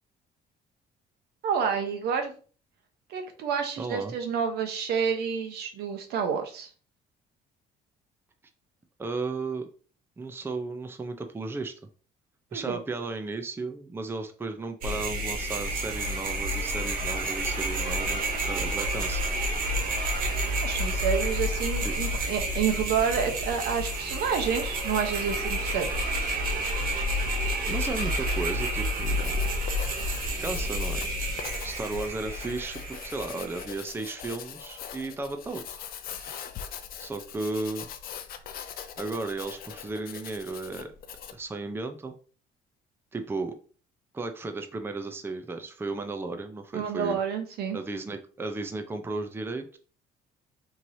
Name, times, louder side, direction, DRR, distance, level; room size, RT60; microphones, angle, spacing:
voice 1, 1.4-2.3 3.1-6.7 12.5-12.8 20.6-25.9 36.2-36.4 46.7-47.8, right 7 dB, 75° right, 5 dB, 0.9 m, -29 dB
voice 2, 3.8-4.1 9.0-9.7 10.2-11.7 12.5-19.2 21.8-21.9 27.7-29.4 30.4-31.1 31.6-35.8 37.0-37.9 39.0-40.9 41.3-42.1 43.1-43.5 44.1-47.2 47.7-49.8, right 3 dB, 15° right, 6 dB, 0.5 m, -34 dB
sound 1, 14.8-33.7, right 1 dB, 55° right, 1.0 m, -29 dB
Writing, 29.0-41.5, left 8 dB, 60° left, 0.5 m, -42 dB
4.5 x 3.1 x 2.7 m, 0.39 s
cardioid pair, 110°, 17 cm